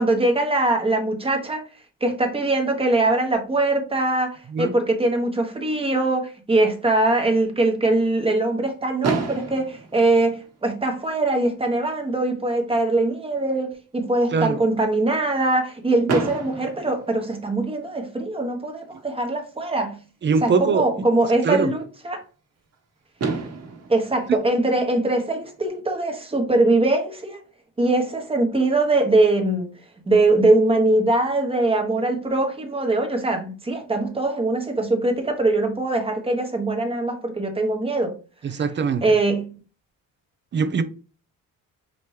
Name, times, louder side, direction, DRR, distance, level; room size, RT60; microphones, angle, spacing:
voice 1, 0.0-1.6 2.0-20.0 20.4-22.2 23.9-27.4 27.8-29.7 30.1-38.1 38.4-38.5 39.0-39.6, right 2 dB, 15° right, 1.1 m, -22 dB
Fireworks, 9.0-11.1 11.9-12.0 12.2-12.4 12.7-12.8 16.1-17.9 19.6-19.7 22.7-22.8 23.2-25.5, right 4 dB, 50° right, 1.3 m, -30 dB
voice 2, 20.2-20.9 21.4-21.7 24.3-24.4 38.4-39.0 40.5-40.8, right 5 dB, 35° right, 0.5 m, -22 dB
5.1 x 2.9 x 3.2 m
cardioid pair, 130°, 33 cm